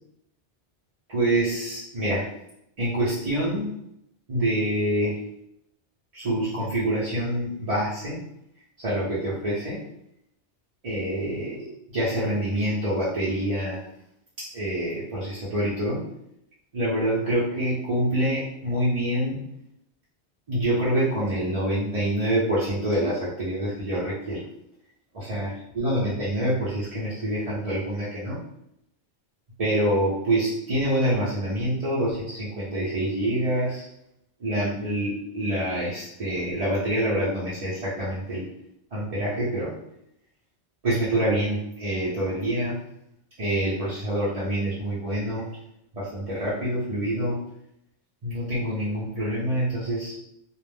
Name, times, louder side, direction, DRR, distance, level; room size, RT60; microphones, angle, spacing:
voice 1, 1.1-2.3 2.8-3.7 4.3-5.2 6.1-8.2 8.8-9.8 10.8-13.8 14.4-16.0 16.7-19.5 20.5-24.4 25.1-28.4 29.6-33.8 34.4-38.4 38.9-39.7 40.8-42.8 43.4-45.5 45.9-47.4 48.2-50.2, right 1 dB, 40° right, -10 dB, 0.7 m, -26 dB
2.4 x 2.0 x 3.4 m, 0.77 s
omnidirectional pair, 1.1 m